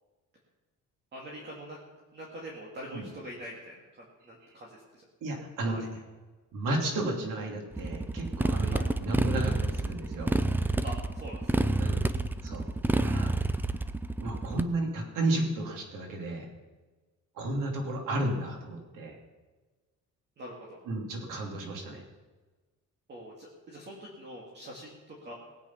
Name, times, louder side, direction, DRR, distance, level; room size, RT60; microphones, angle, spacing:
voice 1, 1.1-1.8 2.1-5.0 5.6-5.8 8.7-8.9 10.8-11.5 20.4-20.8 23.1-25.3, equal, 35° right, -3 dB, 2.3 m, -44 dB
voice 2, 5.2-5.8 6.5-10.4 11.8-12.0 12.4-12.6 12.9-13.3 14.2-16.5 17.4-19.2 20.9-22.0, right 2 dB, 90° right, 1 dB, 3.0 m, -33 dB
Motorcycle, 7.7-14.6, right 2 dB, 5° right, 0.3 m, -29 dB
19.0 x 8.6 x 5.7 m, 1.3 s
cardioid pair, 150°, 31 cm